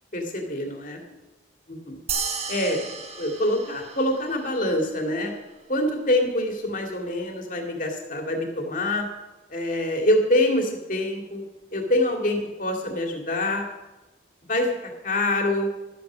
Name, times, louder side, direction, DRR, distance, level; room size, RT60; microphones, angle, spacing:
voice 1, 0.1-1.0 1.7-2.0 2.5-2.8 3.2-5.3 5.7-9.1 9.5-11.4 11.7-13.6 14.5-14.7 15.0-15.7, left 1 dB, 45° left, 2 dB, 2.3 m, -25 dB
sound 1, 2.1-4.8, right 5 dB, 30° right, 1.3 m, -33 dB
13.0 x 9.5 x 6.2 m, 1.1 s
head